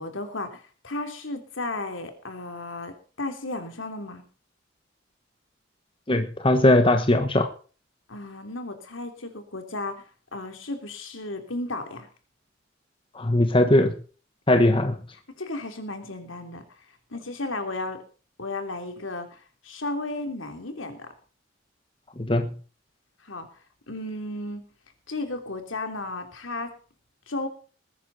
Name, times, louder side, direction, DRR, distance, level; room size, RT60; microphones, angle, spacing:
voice 1, 0.0-4.2 8.1-10.0 10.3-12.1 15.4-16.6 17.1-18.0 18.4-21.1 23.2-23.5 23.9-24.7 25.1-26.7 27.3-27.5, left 2 dB, 80° left, 3.0 m, -34 dB
voice 2, 6.1-7.5 13.1-14.0 14.5-15.0 22.2-22.6, left 1 dB, 25° left, 1.2 m, -20 dB
20.5 x 10.0 x 4.1 m
head